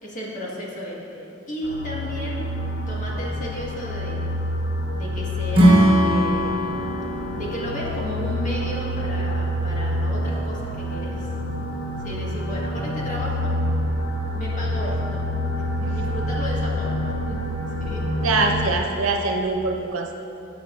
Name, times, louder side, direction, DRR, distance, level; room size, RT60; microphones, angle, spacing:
voice 1, 0.0-2.5 2.9-4.2 4.9-6.9 7.3-11.3 12.0-13.6 14.3-15.2 15.8-18.0, equal, 40° left, -4 dB, 1.7 m, -34 dB
sound 1, 1.6-18.7, equal, 70° left, 1.2 m, -27 dB
Acoustic guitar / Strum, 5.5-8.8, right 1 dB, 25° right, 1.1 m, -20 dB
voice 2, 18.2-20.1, right 3 dB, 90° right, 2 dB, 1.0 m, -23 dB
16.0 x 6.6 x 2.5 m, 2.9 s
head